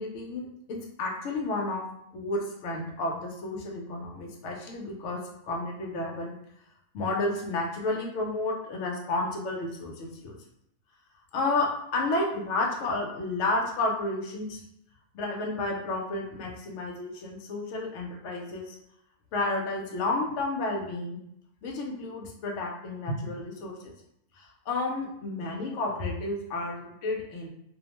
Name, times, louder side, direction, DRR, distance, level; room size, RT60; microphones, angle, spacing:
voice 1, 0.0-1.9 2.1-6.4 6.9-10.3 11.3-14.6 15.1-18.8 19.3-21.2 21.6-23.9 24.3-27.5, left 2 dB, 65° left, 0 dB, 0.7 m, -31 dB
2.5 x 2.0 x 2.9 m, 0.75 s
omnidirectional pair, 1.6 m